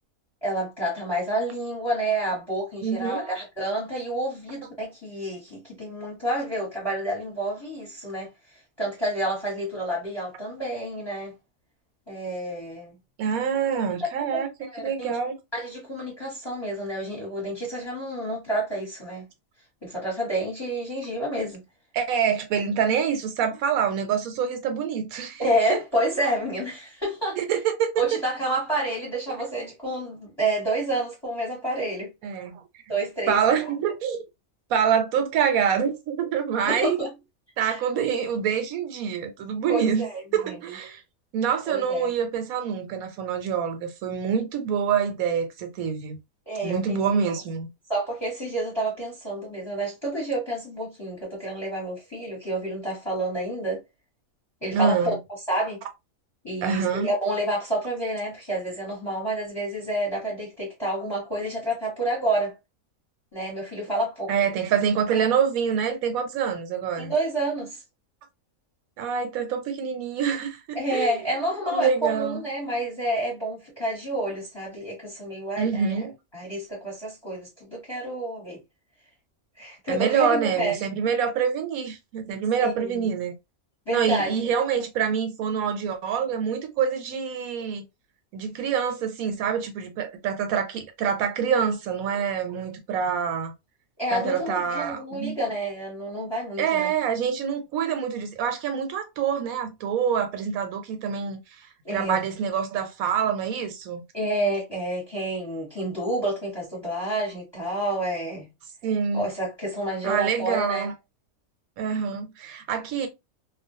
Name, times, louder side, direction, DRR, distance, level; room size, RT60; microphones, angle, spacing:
voice 1, 0.4-8.3 8.8-11.3 12.1-12.9 14.3-15.1 15.5-19.3 19.8-21.6 25.4-27.4 28.0-32.1 32.9-33.4 36.6-37.1 37.6-37.8 39.7-40.1 40.4-40.6 41.6-42.1 46.5-47.0 47.9-53.8 54.6-55.1 55.5-55.8 56.4-62.5 63.3-64.3 67.0-67.8 70.7-76.0 76.3-78.6 79.6-80.7 82.6-83.1 83.9-84.4 94.0-96.9 101.8-102.2 104.1-108.5 109.1-110.9, right 1 dB, 20° left, 1.1 m, -29 dB
voice 2, 2.8-3.3 13.2-14.5 14.8-15.4 21.9-25.8 27.4-28.2 32.2-32.6 33.3-34.2 34.7-37.0 37.6-40.1 40.3-41.0 41.3-46.2 46.6-47.7 54.7-55.2 56.6-57.1 64.3-67.1 69.0-71.2 71.7-72.4 75.6-76.1 79.9-83.3 83.9-87.8 88.3-93.5 94.1-95.4 96.6-101.4 101.9-104.0 108.8-109.3 110.0-110.9 111.8-113.1, right 7 dB, 80° right, 1.1 m, -26 dB
2.5 x 2.3 x 2.7 m
omnidirectional pair, 1.5 m